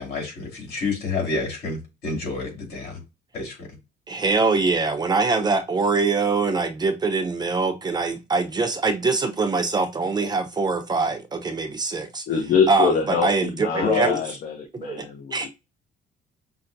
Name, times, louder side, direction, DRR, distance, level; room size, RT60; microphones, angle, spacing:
voice 1, 0.0-3.0 3.3-3.7 13.8-14.2, left 3 dB, 70° left, 2.4 m, -27 dB
voice 2, 4.1-12.2 12.7-14.1 14.7-15.1 15.3-15.5, right 4 dB, 25° right, 0.6 m, -23 dB
voice 3, 12.3-15.5, left 6 dB, 55° left, 0.8 m, -25 dB
5.7 x 2.1 x 2.5 m
cardioid pair, 110°, 17 cm